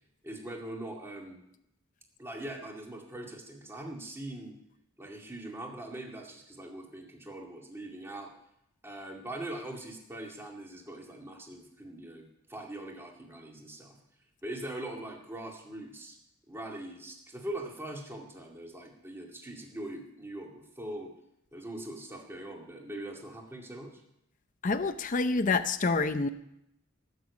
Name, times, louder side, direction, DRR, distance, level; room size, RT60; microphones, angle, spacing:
voice 1, 0.2-1.4 2.2-4.5 5.0-8.3 8.8-14.0 14.4-16.2 16.5-21.1 21.5-23.9, right 1 dB, 10° right, 0 dB, 2.2 m, -42 dB
voice 2, 24.6-26.3, left 3 dB, 40° left, 9 dB, 0.6 m, -27 dB
18.5 x 6.9 x 8.3 m, 0.79 s
head